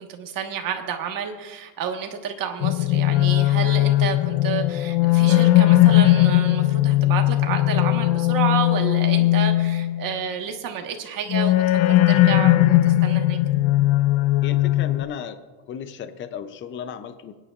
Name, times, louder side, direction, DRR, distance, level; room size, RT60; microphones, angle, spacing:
voice 1, 0.0-13.4, right 7 dB, 45° right, 4 dB, 1.4 m, -30 dB
sound 1, 2.6-10.2 11.3-15.0, left 15 dB, 90° left, 0.6 m, -18 dB
voice 2, 14.4-15.4 15.7-17.3, left 8 dB, 25° left, 10 dB, 0.5 m, -34 dB
23.5 x 9.8 x 2.4 m, 1.4 s
cardioid pair, 155°, 47 cm